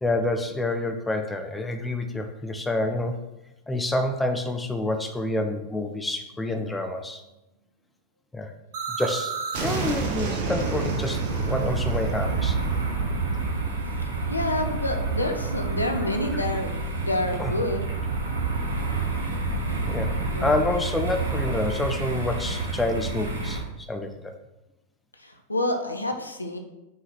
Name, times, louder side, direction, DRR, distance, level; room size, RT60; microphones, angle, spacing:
voice 1, 0.0-3.2 3.7-7.2 8.3-8.5 8.9-9.3 9.6-11.2 11.4-12.6 16.3-16.4 17.4-17.5 19.9-24.3, left 2 dB, 10° left, 6 dB, 0.7 m, -28 dB
sound 1, 8.7-14.5, right 4 dB, 50° right, 1.3 m, -31 dB
sound 2, 10.6-23.6, right 3 dB, 70° right, 1.6 m, -28 dB
voice 2, 14.3-17.8 20.2-20.5 25.2-26.6, left 1 dB, 85° left, 5 dB, 0.9 m, -28 dB
6.3 x 4.8 x 5.8 m, 0.97 s
figure-of-eight pair, 90°, 0 cm